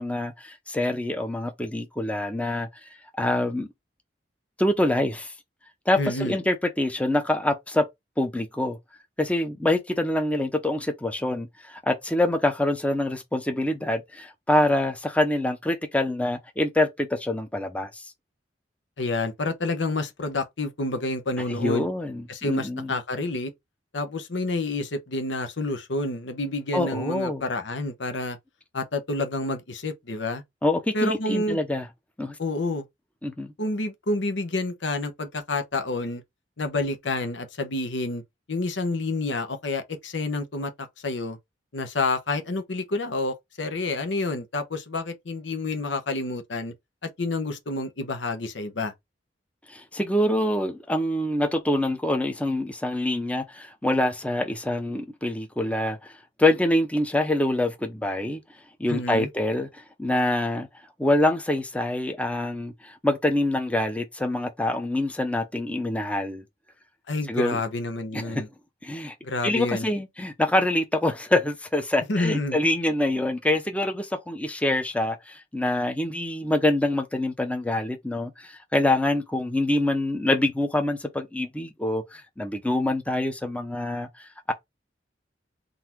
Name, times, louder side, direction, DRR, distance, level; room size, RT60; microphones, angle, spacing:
voice 1, 0.0-2.7 3.2-3.7 4.6-5.3 5.9-7.9 8.2-8.8 9.2-18.1 21.5-23.0 26.7-27.4 30.6-31.9 32.2-32.4 33.2-33.5 49.7-56.1 56.4-58.4 58.8-60.7 61.0-66.4 67.3-67.6 68.1-68.4 68.8-69.1 69.4-84.5, left 1 dB, 5° left, 0.6 m, -25 dB
voice 2, 6.0-6.4 19.0-21.9 22.3-23.5 23.9-28.4 28.7-30.4 30.9-31.6 32.4-32.8 33.6-36.2 36.6-38.2 38.5-41.4 41.7-46.7 47.0-48.9 58.9-59.3 67.1-68.5 69.2-69.9 72.1-72.6, left 2 dB, 80° left, 0.9 m, -29 dB
3.9 x 2.6 x 4.5 m
head